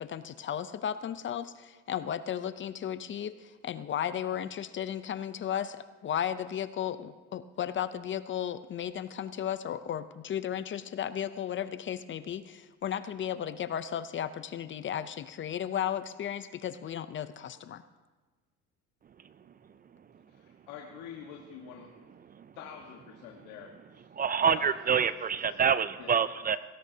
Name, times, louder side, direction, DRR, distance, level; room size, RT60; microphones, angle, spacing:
voice 1, 0.0-17.8, left 9 dB, 40° left, 13 dB, 0.6 m, -35 dB
voice 2, 20.3-21.9 22.5-24.1 24.4-24.7 25.2-25.3 26.0-26.1, left 8 dB, 85° left, 1 dB, 1.5 m, -46 dB
voice 3, 24.1-26.6, right 7 dB, 30° right, 14 dB, 0.4 m, -26 dB
18.5 x 17.0 x 2.8 m, 1.3 s
cardioid pair, 105°, 31 cm